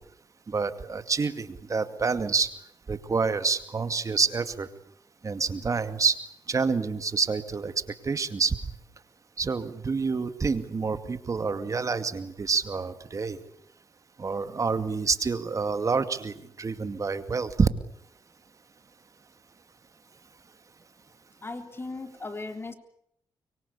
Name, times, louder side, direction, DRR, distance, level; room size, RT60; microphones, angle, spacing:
voice 1, 0.5-2.5 2.9-4.7 5.2-6.2 6.5-7.7 8.0-8.6 9.4-13.4 14.2-17.7, right 4 dB, 40° right, 10 dB, 2.3 m, -27 dB
voice 2, 21.4-22.7, left 3 dB, 30° left, 7 dB, 3.5 m, -37 dB
24.5 x 24.0 x 8.5 m, 0.71 s
cardioid pair, 75°, 8 cm